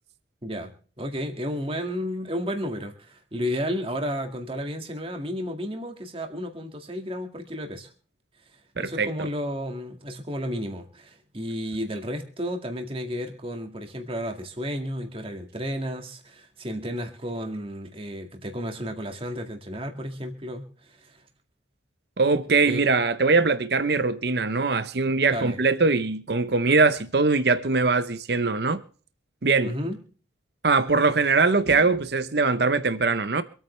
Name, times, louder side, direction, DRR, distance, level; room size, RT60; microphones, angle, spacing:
voice 1, 0.4-7.9 8.8-21.2 22.7-22.9 25.3-25.6 29.6-30.0, equal, 30° right, 2.0 m, -32 dB
voice 2, 8.8-9.3 22.2-28.8 29.4-29.7 30.6-33.4, right 4 dB, 60° right, 0.8 m, -22 dB
26.0 x 9.1 x 3.3 m
head